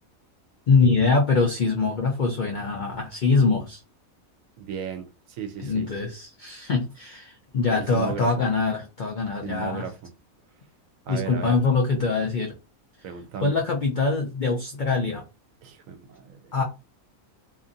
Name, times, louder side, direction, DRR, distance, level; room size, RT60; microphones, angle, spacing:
voice 1, 0.7-3.8 5.6-9.8 11.1-12.5 13.4-15.2 16.5-16.6, left 4 dB, 70° left, 0.4 m, -23 dB
voice 2, 4.6-5.9 7.7-8.5 9.4-10.1 11.1-11.6 13.0-13.6 15.6-16.4, right 7 dB, 75° right, 1.0 m, -35 dB
2.8 x 2.5 x 2.5 m
omnidirectional pair, 1.5 m